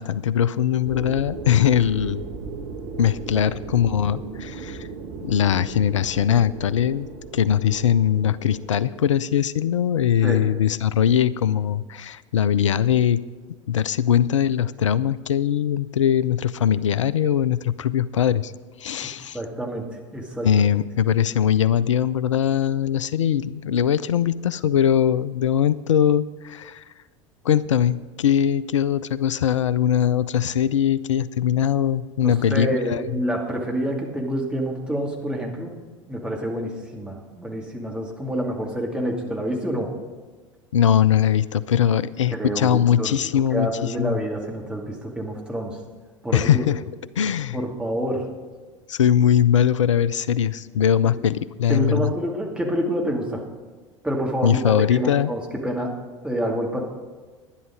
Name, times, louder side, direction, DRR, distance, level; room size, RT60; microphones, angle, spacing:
voice 1, 0.0-2.2 3.0-4.9 5.2-13.2 13.7-18.5 18.8-19.4 20.4-26.8 27.4-33.0 40.7-44.2 46.3-46.8 47.2-47.6 48.9-52.1 54.4-55.3, left 9 dB, 75° left, 18 dB, 0.4 m, -21 dB
sound 1, 0.8-9.1, right 4 dB, 50° right, 1.2 m, -36 dB
voice 2, 19.3-20.7 32.2-35.8 36.1-39.9 42.3-43.2 43.5-45.8 46.2-46.7 47.5-48.3 51.0-51.2 51.7-53.4 54.0-55.9 56.2-56.8, right 1 dB, 5° right, -1 dB, 2.3 m, -27 dB
11.5 x 10.5 x 5.2 m, 1.4 s
figure-of-eight pair, 75°, 16 cm